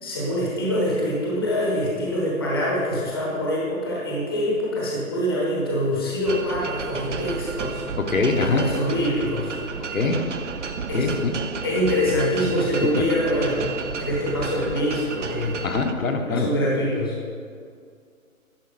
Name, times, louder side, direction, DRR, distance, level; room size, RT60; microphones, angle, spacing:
voice 1, 0.0-7.8 8.3-9.6 10.9-11.1 11.6-15.6 16.2-17.1, equal, 15° left, -5 dB, 0.9 m, -25 dB
Big Metal Chain, 6.3-15.9, right 5 dB, 55° right, 0.6 m, -32 dB
voice 2, 8.0-8.6 9.9-10.2 10.9-11.3 15.6-16.5, left 4 dB, 65° left, 3 dB, 1.1 m, -23 dB
10.0 x 4.9 x 4.8 m, 2.2 s
hypercardioid pair, 165°, 43 cm